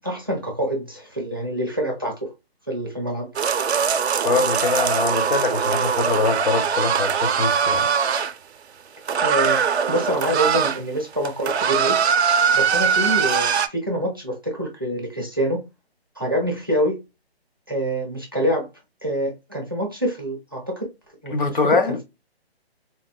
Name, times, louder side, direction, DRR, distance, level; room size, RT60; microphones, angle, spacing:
voice 1, 0.0-2.2 2.7-3.3 9.2-12.0 12.5-15.6 16.2-17.0 17.7-18.7 19.0-20.9 21.2-21.6, right 1 dB, 20° right, 0.4 m, -26 dB
sound 1, 3.4-8.3 9.1-10.8 11.1-13.7, right 7 dB, 85° right, 0.5 m, -21 dB
voice 2, 4.2-7.9 21.3-22.0, left 4 dB, 55° left, 0.5 m, -23 dB
4.1 x 2.1 x 2.2 m
hypercardioid pair, 165°, 32 cm